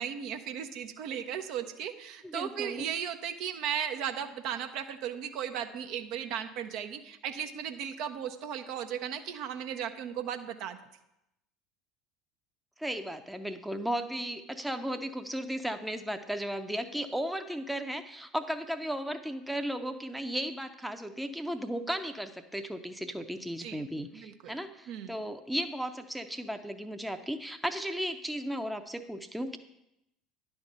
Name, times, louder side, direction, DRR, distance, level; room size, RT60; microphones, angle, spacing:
voice 1, 0.0-10.8 23.6-23.8 24.1-24.6 24.9-25.2, right 9 dB, 55° right, 7 dB, 0.5 m, -36 dB
voice 2, 2.2-2.9 12.8-29.6, equal, 5° right, 7 dB, 0.6 m, -35 dB
10.5 x 3.5 x 6.5 m, 0.85 s
figure-of-eight pair, 70°, 0 cm